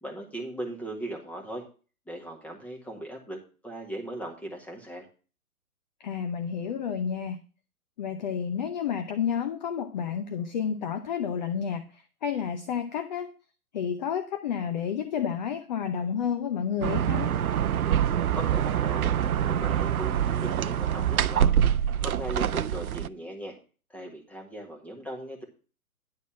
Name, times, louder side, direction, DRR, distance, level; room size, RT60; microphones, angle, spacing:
voice 1, 0.0-1.6 2.1-5.0 18.3-21.5 22.0-23.5 23.9-25.4, right 1 dB, 5° left, 1.7 m, -38 dB
voice 2, 6.0-7.4 8.0-13.3 13.7-17.4, left 7 dB, 30° left, 0.7 m, -30 dB
sound 1, 16.8-23.1, right 9 dB, 70° right, 0.6 m, -25 dB
10.5 x 4.1 x 7.3 m
figure-of-eight pair, 130°, 45 cm